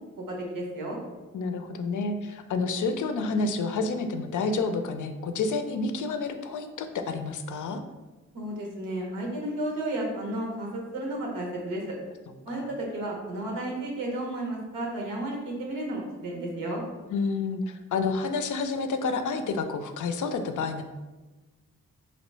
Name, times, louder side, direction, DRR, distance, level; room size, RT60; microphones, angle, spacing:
voice 1, 0.3-1.0 8.3-11.8 12.4-16.8, right 1 dB, 90° right, -1 dB, 0.8 m, -32 dB
voice 2, 1.3-7.8 12.5-12.7 17.1-20.8, left 4 dB, 65° left, 7 dB, 0.4 m, -29 dB
3.0 x 2.9 x 3.1 m, 1.2 s
cardioid pair, 50°, 33 cm